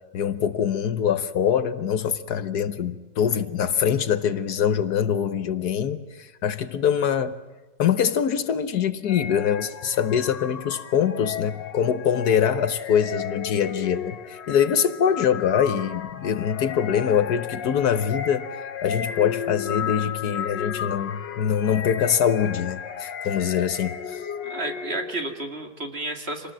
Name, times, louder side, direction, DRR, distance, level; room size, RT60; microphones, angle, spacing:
voice 1, 0.1-7.4 7.8-18.5 18.8-24.2, left 8 dB, 65° left, 11 dB, 1.4 m, -24 dB
sound 1, 9.1-25.3, left 8 dB, 90° left, 1.7 m, -34 dB
voice 2, 24.4-26.5, right 2 dB, 35° right, 4 dB, 2.3 m, -31 dB
26.5 x 19.5 x 7.4 m, 1.2 s
omnidirectional pair, 1.9 m